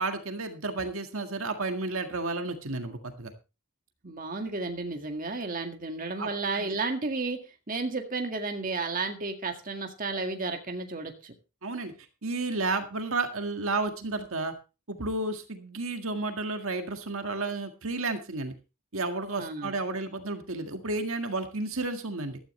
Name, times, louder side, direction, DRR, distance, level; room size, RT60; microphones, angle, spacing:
voice 1, 0.0-3.3 6.2-6.3 6.6-6.8 11.6-11.9 12.2-14.5 14.9-18.5 18.9-22.4, right 3 dB, 70° right, 6 dB, 1.8 m, -32 dB
voice 2, 4.0-7.4 7.7-11.3 19.4-19.8, right 3 dB, 40° right, 4 dB, 1.9 m, -32 dB
15.5 x 13.0 x 3.2 m, 0.31 s
head